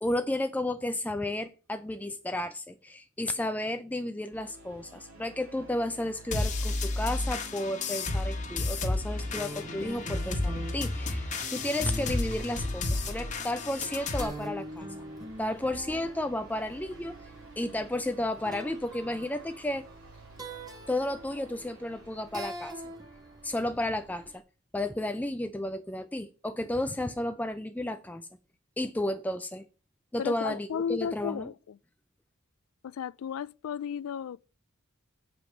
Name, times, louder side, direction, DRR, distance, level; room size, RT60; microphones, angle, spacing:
voice 1, 0.0-14.9 15.4-17.3 17.6-19.8 20.9-22.7 23.4-24.4 24.7-28.3 28.8-29.6 30.1-31.5, left 1 dB, 5° left, 0.4 m, -32 dB
sound 1, 4.3-23.8, right 2 dB, 70° right, 2.5 m, -53 dB
sound 2, 6.3-14.2, left 2 dB, 35° left, 1.3 m, -32 dB
sound 3, 9.2-24.4, right 1 dB, 20° right, 1.7 m, -43 dB
voice 2, 30.2-31.8 32.8-34.5, left 7 dB, 80° left, 0.4 m, -34 dB
7.6 x 5.1 x 7.1 m
head